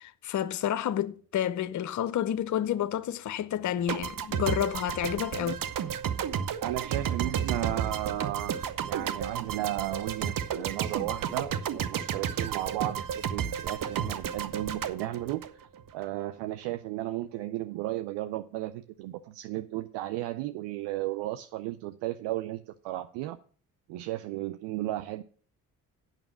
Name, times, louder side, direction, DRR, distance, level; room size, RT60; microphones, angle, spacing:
voice 1, 0.0-5.6, left 10 dB, 40° left, 0.7 m, -30 dB
sound 1, 3.9-16.1, right 8 dB, 45° right, 0.9 m, -32 dB
voice 2, 6.6-15.7 15.9-23.4 23.9-25.2, right 15 dB, 65° right, 0.6 m, -34 dB
8.9 x 6.1 x 7.5 m
figure-of-eight pair, 40°, 44 cm